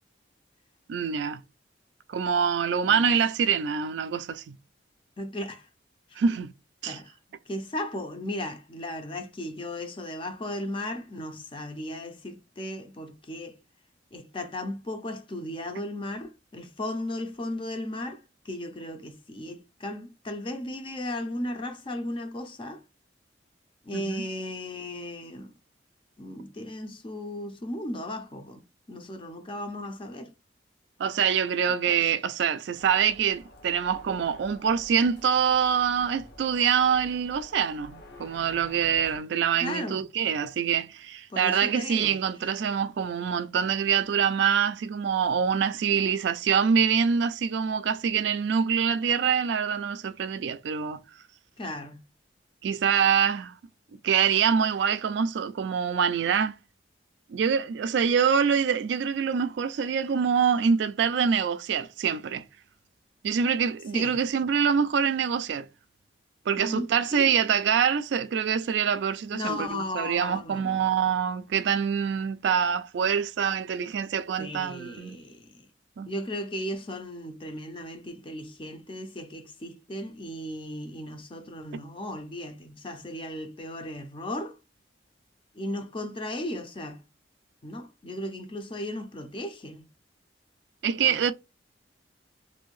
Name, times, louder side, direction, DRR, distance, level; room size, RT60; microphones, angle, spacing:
voice 1, 0.9-1.4 2.1-4.4 6.2-6.5 6.8-7.0 23.9-24.2 31.0-51.0 52.6-53.5 54.0-56.5 57.3-62.4 63.2-65.7 66.5-75.2 76.0-76.1 90.8-91.3, right 7 dB, 70° right, 0.3 m, -25 dB
voice 2, 5.2-5.7 6.1-6.2 6.8-7.1 7.5-13.6 14.1-22.8 23.8-25.5 26.2-28.6 28.9-30.3 31.7-32.0 39.6-40.0 41.3-42.2 51.6-52.1 63.9-64.2 66.6-67.3 69.3-71.0 74.4-75.6 76.1-84.6 85.5-87.0 87.6-89.9 91.0-91.3, left 1 dB, 30° left, 0.5 m, -36 dB
sound 1, 32.7-39.2, left 1 dB, 55° left, 0.8 m, -49 dB
2.6 x 2.6 x 3.1 m
head